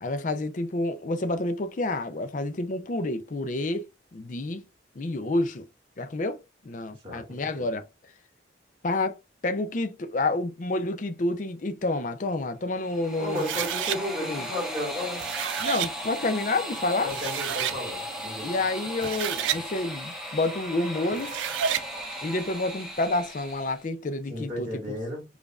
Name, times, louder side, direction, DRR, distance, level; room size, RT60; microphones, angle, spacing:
voice 1, 0.0-3.8 4.1-4.6 5.0-5.7 6.0-6.4 6.6-7.8 8.8-9.2 9.4-13.4 14.3-14.5 15.6-17.1 18.4-21.4 22.2-25.0, left 2 dB, 45° left, 0.5 m, -29 dB
voice 2, 7.0-7.6 13.2-15.3 17.0-18.5 24.3-25.2, left 1 dB, 30° right, 2.0 m, -33 dB
sound 1, 12.7-23.8, equal, 5° right, 1.0 m, -37 dB
sound 2, 13.4-14.0 15.0-15.9 16.7-16.8 17.1-17.8 18.9-19.6 21.1-21.9, right 9 dB, 85° right, 0.4 m, -30 dB
5.2 x 2.4 x 2.3 m
head